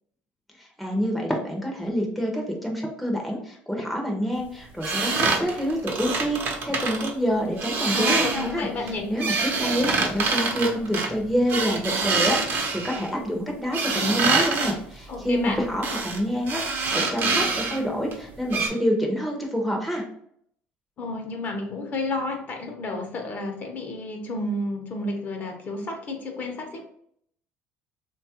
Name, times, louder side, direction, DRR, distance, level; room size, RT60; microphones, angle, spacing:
voice 1, 0.6-20.1, equal, ahead, 0 dB, 0.6 m, -27 dB
sound 1, 4.8-7.1 7.6-8.5 8.9-13.1 13.7-14.7 15.8-16.2 16.4-17.8 18.1-18.2 18.5-18.7, right 4 dB, 50° right, 0.7 m, -25 dB
voice 2, 7.9-9.1 15.1-15.6 21.0-26.9, left 2 dB, 40° left, 3 dB, 0.7 m, -31 dB
3.0 x 2.3 x 2.8 m, 0.67 s
cardioid pair, 110°, 4 cm